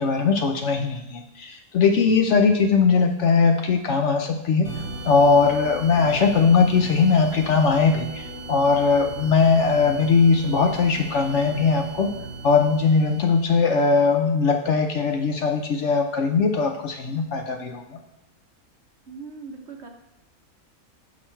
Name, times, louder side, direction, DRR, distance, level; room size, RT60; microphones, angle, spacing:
voice 1, 0.0-4.7 5.1-12.1 12.4-18.0, left 4 dB, 65° left, 4 dB, 0.8 m, -20 dB
sound 1, 4.6-14.0, right 3 dB, 40° left, 2.3 m, -37 dB
voice 2, 19.1-19.9, right 4 dB, 55° right, 2 dB, 1.1 m, -39 dB
6.0 x 5.8 x 4.5 m, 0.93 s
omnidirectional pair, 1.5 m